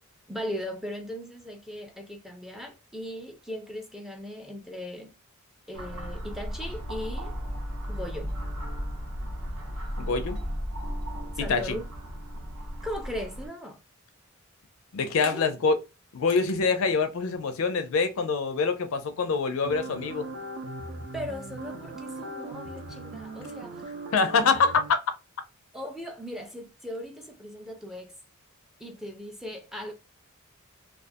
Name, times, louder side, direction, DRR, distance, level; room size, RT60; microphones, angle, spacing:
voice 1, 0.3-5.1 5.7-7.3 7.9-8.3 11.4-11.9 12.8-13.8 15.2-15.5 21.1-23.8 25.7-28.1 28.8-29.9, equal, ahead, 0.4 m, -38 dB
sound 1, 5.7-13.5, equal, 80° right, 0.8 m, -35 dB
voice 2, 10.0-10.4 11.5-11.8 14.9-15.8 16.1-20.3 24.1-24.8, left 4 dB, 70° left, 0.4 m, -25 dB
sound 2, 19.6-24.9, right 2 dB, 55° right, 0.5 m, -39 dB
2.4 x 2.3 x 2.5 m
head